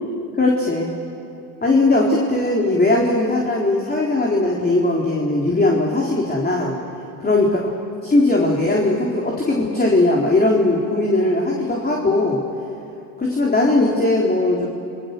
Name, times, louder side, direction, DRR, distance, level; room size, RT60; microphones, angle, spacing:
voice 1, 0.4-0.9 1.6-6.8 7.2-7.5 8.0-12.4 13.2-14.7, left 2 dB, 20° left, -2 dB, 3.8 m, -19 dB
28.5 x 21.5 x 6.9 m, 2.7 s
supercardioid pair, 85°, 43 cm